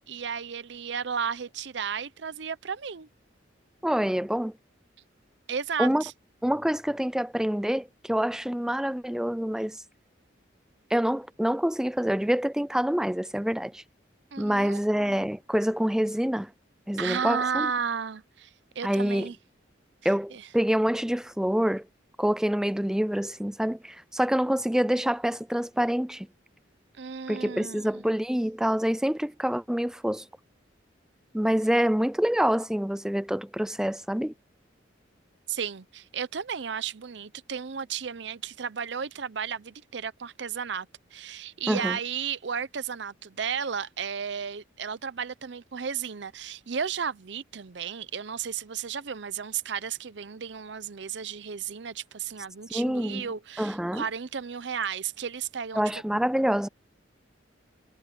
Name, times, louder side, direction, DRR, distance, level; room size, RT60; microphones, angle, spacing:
voice 1, 0.0-3.1 5.5-6.1 14.3-14.8 17.0-18.5 18.8-19.4 20.3-20.4 27.0-28.0 35.5-55.8, right 7 dB, 65° right, 0.6 m, -33 dB
voice 2, 3.8-4.5 5.8-6.0 6.4-9.8 10.9-13.8 14.4-16.5 16.9-17.7 18.8-19.3 20.0-21.8 22.2-26.3 27.3-30.3 31.3-34.3 41.7-42.0 52.7-53.2 53.6-54.0 55.7-56.7, equal, 5° right, 0.4 m, -26 dB
head